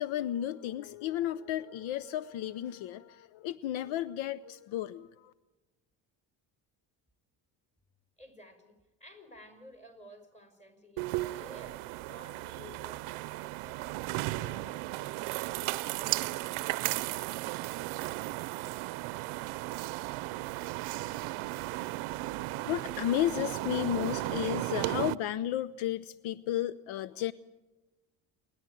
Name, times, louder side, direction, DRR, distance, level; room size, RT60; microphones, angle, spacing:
voice 1, 0.0-5.3 22.4-27.3, left 12 dB, 70° left, 17 dB, 0.7 m, -33 dB
voice 2, 8.2-16.5, left 1 dB, 15° left, 6 dB, 5.4 m, -54 dB
sound 1, 11.0-25.1, right 19 dB, 80° right, 0.7 m, -35 dB
28.5 x 11.0 x 9.2 m, 1.1 s
cardioid pair, 90°, 49 cm